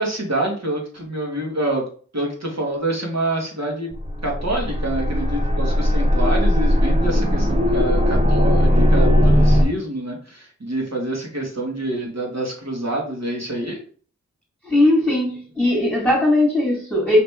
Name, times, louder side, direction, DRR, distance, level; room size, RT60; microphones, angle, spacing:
voice 1, 0.0-1.9 2.1-3.9 4.2-13.8, right 1 dB, 60° right, 0 dB, 1.8 m, -26 dB
sound 1, 3.9-9.6, equal, 20° right, 1.0 m, -18 dB
voice 2, 14.6-17.2, left 1 dB, 5° left, -3 dB, 1.9 m, -18 dB
5.1 x 2.9 x 3.5 m, 0.43 s
cardioid pair, 40°, 31 cm